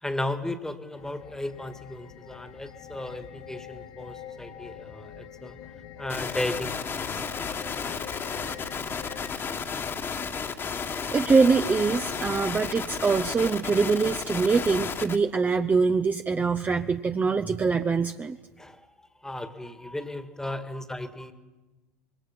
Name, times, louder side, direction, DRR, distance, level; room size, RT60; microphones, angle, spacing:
voice 1, 0.0-5.6 6.0-7.2 18.6-21.3, left 1 dB, 5° left, 10 dB, 1.8 m, -35 dB
sound 1, 0.9-9.3, left 10 dB, 50° left, 2.5 m, -44 dB
sound 2, 6.1-15.2, left 5 dB, 25° left, 1.7 m, -33 dB
voice 2, 11.1-18.4, right 4 dB, 20° right, 8 dB, 0.8 m, -24 dB
26.0 x 22.5 x 5.9 m, 1.2 s
hypercardioid pair, 90°, 9 cm